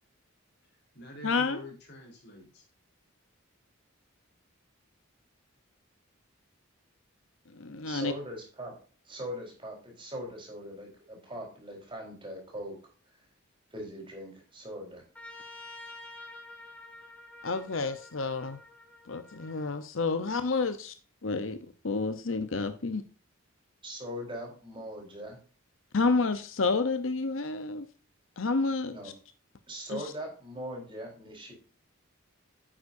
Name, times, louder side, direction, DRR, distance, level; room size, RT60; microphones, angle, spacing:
voice 1, 0.6-2.6, left 1 dB, 50° left, 1 dB, 3.8 m, -47 dB
voice 2, 1.2-1.6 7.6-8.1 17.4-18.6 19.1-20.9 21.2-21.6 21.8-23.0 25.9-27.9 28.4-29.1 29.9-30.0, left 3 dB, 70° left, 10 dB, 0.8 m, -29 dB
voice 3, 7.8-8.7 9.0-12.7 13.7-15.0 23.8-25.4 28.9-29.1 29.7-31.5, equal, 25° right, 0 dB, 4.2 m, -40 dB
Trumpet, 15.1-19.7, left 2 dB, 5° left, 1.9 m, -48 dB
10.0 x 8.3 x 2.6 m, 0.38 s
head